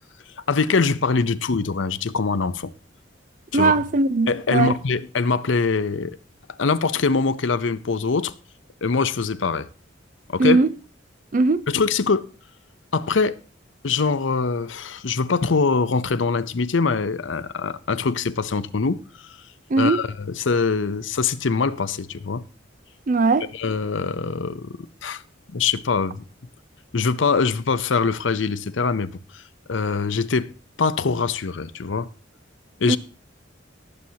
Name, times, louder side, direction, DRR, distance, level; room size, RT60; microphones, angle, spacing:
voice 1, 0.5-2.7 3.5-3.8 4.3-6.2 6.6-8.3 8.8-9.7 10.3-10.6 11.7-12.3 12.9-13.4 13.8-19.0 19.8-22.4 23.5-24.7 25.0-25.2 25.5-26.2 26.9-29.4 29.7-30.5 30.8-32.1 32.8-33.0, left 4 dB, 75° left, 0.7 m, -23 dB
voice 2, 3.5-4.7 10.4-10.7 11.3-11.6 19.7-20.0 23.1-23.5 32.9-33.0, right 3 dB, 45° right, 0.5 m, -19 dB
19.0 x 7.8 x 2.8 m
head